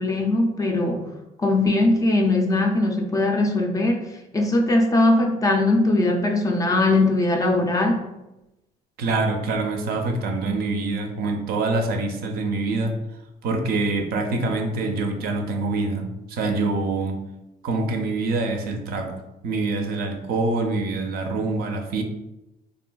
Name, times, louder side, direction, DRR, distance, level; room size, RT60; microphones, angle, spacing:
voice 1, 0.0-8.0, left 2 dB, 20° left, 3 dB, 0.3 m, -20 dB
voice 2, 9.0-13.0 13.4-17.2 17.6-22.0, right 3 dB, 70° right, 4 dB, 0.5 m, -25 dB
3.3 x 2.4 x 2.2 m, 0.94 s
cardioid pair, 110°, 17 cm